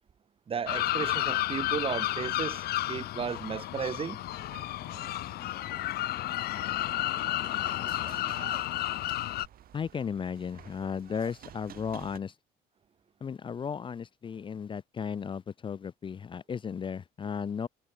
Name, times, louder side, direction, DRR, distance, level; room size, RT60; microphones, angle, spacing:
voice 1, 0.5-4.2, right 7 dB, 35° right, 0.8 m, -34 dB
sound 1, 0.7-9.5, left 15 dB, 70° left, 0.8 m, -32 dB
sound 2, 4.2-12.2, right 12 dB, 60° right, 1.6 m, -51 dB
voice 2, 9.7-12.3 13.2-17.7, left 6 dB, 30° left, 0.5 m, -35 dB
cardioid pair, 110°, 17 cm